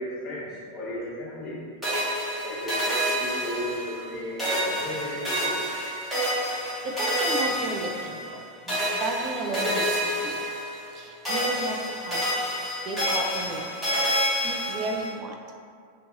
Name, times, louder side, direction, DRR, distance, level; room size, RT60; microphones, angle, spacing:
voice 1, 0.0-1.6 2.4-5.5 13.0-13.1, equal, 30° left, -9 dB, 1.0 m, -34 dB
sound 1, 1.8-4.1 4.4-8.4 8.7-11.0 11.2-15.1, equal, ahead, 1.1 m, -28 dB
voice 2, 6.4-10.5 10.9-13.7 14.4-15.4, right 2 dB, 35° right, 2 dB, 0.3 m, -34 dB
2.5 x 2.3 x 2.5 m, 2.1 s
figure-of-eight pair, 90°, 0 cm